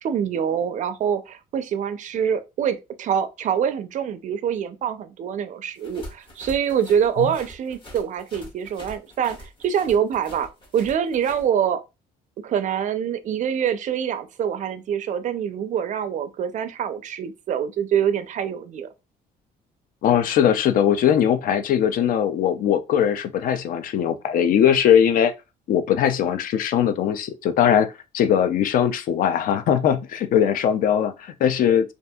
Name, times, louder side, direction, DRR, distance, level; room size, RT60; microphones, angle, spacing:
voice 1, 0.0-10.5 10.7-11.8 12.4-18.9, right 8 dB, 45° right, 0.4 m, -25 dB
sound 1, 5.8-11.5, equal, 30° left, 1.1 m, -44 dB
voice 2, 20.0-25.3 25.7-31.9, left 9 dB, 55° left, 0.4 m, -20 dB
2.6 x 2.4 x 2.2 m
cardioid pair, 110°, 17 cm